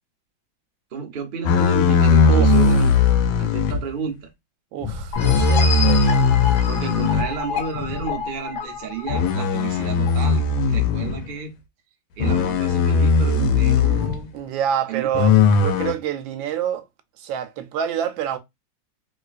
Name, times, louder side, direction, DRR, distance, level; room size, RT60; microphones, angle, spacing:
voice 1, 0.9-2.9 3.4-4.3 6.7-10.4 10.7-11.5 12.2-14.3 14.9-15.1, right 6 dB, 60° right, 0.5 m, -31 dB
sound 1, 1.5-3.8 4.8-7.3 7.8-8.0 9.1-11.2 12.2-14.2 15.1-15.9, left 4 dB, 85° left, 1.4 m, -18 dB
voice 2, 2.2-2.9 4.7-6.0 14.3-16.8 17.2-18.4, right 9 dB, 80° right, 1.3 m, -27 dB
sound 2, 5.1-10.6, left 6 dB, 65° left, 1.2 m, -29 dB
3.3 x 2.9 x 2.4 m
omnidirectional pair, 2.1 m